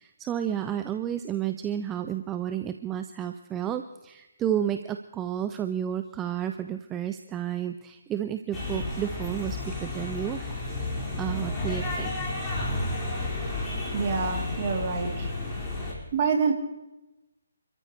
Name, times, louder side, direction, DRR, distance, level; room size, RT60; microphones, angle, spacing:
voice 1, 0.0-10.5 11.2-12.1, right 10 dB, 15° right, 8 dB, 0.6 m, -31 dB
sound 1, 8.5-15.9, left 2 dB, 10° left, 4.9 m, -32 dB
voice 2, 13.9-15.3 16.1-16.5, right 5 dB, 35° right, 2 dB, 3.0 m, -26 dB
29.5 x 13.5 x 3.3 m, 0.98 s
figure-of-eight pair, 140°, 0 cm